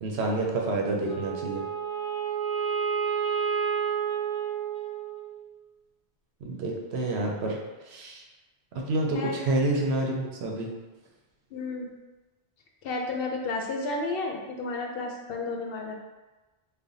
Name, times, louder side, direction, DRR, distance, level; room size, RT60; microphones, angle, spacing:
voice 1, 0.0-1.6 6.4-7.6 7.9-8.2 8.7-10.7, right 2 dB, 80° right, -1 dB, 0.9 m, -28 dB
Wind instrument woodwind instrument, 1.0-5.5, right 7 dB, 25° left, 0.4 m, -30 dB
voice 2, 11.5-11.9 12.8-15.9, left 3 dB, 65° left, 1 dB, 0.7 m, -32 dB
3.3 x 2.1 x 3.8 m, 1.2 s
omnidirectional pair, 1.1 m